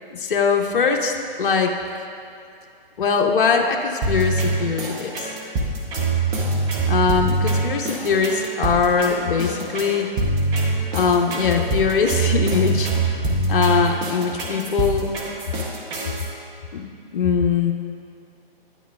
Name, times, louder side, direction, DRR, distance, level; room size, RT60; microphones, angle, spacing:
voice 1, 0.1-1.8 3.0-5.3 6.9-10.1 10.9-13.1 13.5-15.1 16.7-17.7, left 5 dB, 60° left, 2 dB, 0.7 m, -21 dB
sound 1, 4.0-16.3, right 2 dB, 15° right, 0.6 m, -24 dB
9.4 x 9.2 x 2.3 m, 2.5 s
figure-of-eight pair, 135°, 29 cm